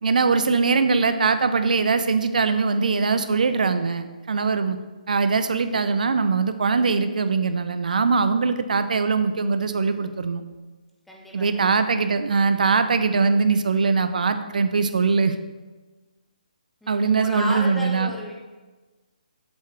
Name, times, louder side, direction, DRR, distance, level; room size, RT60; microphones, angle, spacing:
voice 1, 0.0-4.8 5.1-10.4 11.3-15.3 16.9-18.1, right 4 dB, 65° right, 10 dB, 0.6 m, -21 dB
voice 2, 11.1-11.7 16.8-18.3, left 1 dB, ahead, -4 dB, 1.1 m, -33 dB
8.1 x 6.7 x 3.3 m, 1.3 s
figure-of-eight pair, 150°, 5 cm